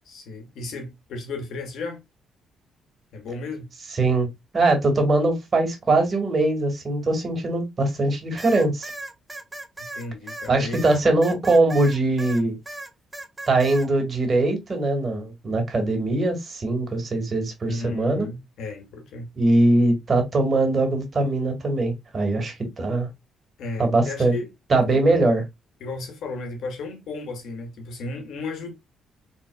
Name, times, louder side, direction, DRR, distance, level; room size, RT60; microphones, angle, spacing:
voice 1, 0.1-2.0 3.1-3.7 9.8-10.8 17.7-19.3 23.6-24.5 24.9-25.2 25.8-28.7, left 3 dB, 75° left, 2.0 m, -34 dB
voice 2, 4.5-8.9 10.5-12.5 13.5-18.3 19.4-23.1 23.8-24.4 24.7-25.4, right 2 dB, 40° right, 2.1 m, -21 dB
sound 1, 8.4-12.4 12.7-13.9, right 2 dB, 15° right, 0.9 m, -37 dB
4.5 x 4.1 x 2.3 m
cardioid pair, 90°, 0 cm